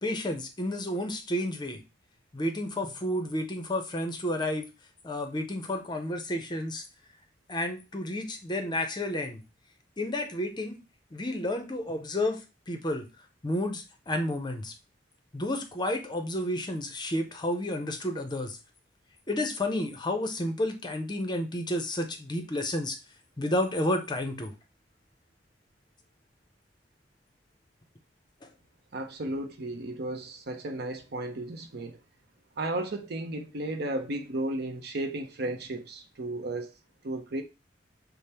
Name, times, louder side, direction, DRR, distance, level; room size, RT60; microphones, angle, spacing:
voice 1, 0.0-1.8 2.3-4.7 5.0-6.8 7.5-9.4 10.0-10.8 11.1-12.4 12.7-13.1 13.4-14.7 15.3-18.6 19.3-23.0 23.4-24.5 28.4-28.5, left 1 dB, 25° left, 0.6 m, -31 dB
voice 2, 28.9-32.0 32.6-36.7 37.0-37.4, right 2 dB, 60° right, 0.7 m, -34 dB
5.1 x 2.0 x 4.2 m
head